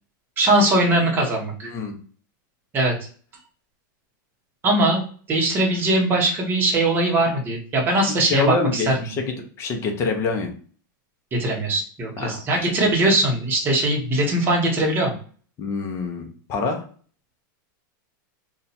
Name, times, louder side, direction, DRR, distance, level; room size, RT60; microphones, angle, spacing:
voice 1, 0.4-1.7 2.7-2.9 4.6-5.0 5.3-9.1 11.3-15.1, right 1 dB, 20° right, -1 dB, 0.9 m, -20 dB
voice 2, 8.3-10.5 12.2-12.4 15.6-16.8, left 4 dB, 25° left, 4 dB, 0.6 m, -26 dB
2.7 x 2.2 x 4.0 m, 0.43 s
supercardioid pair, 160°, 11 cm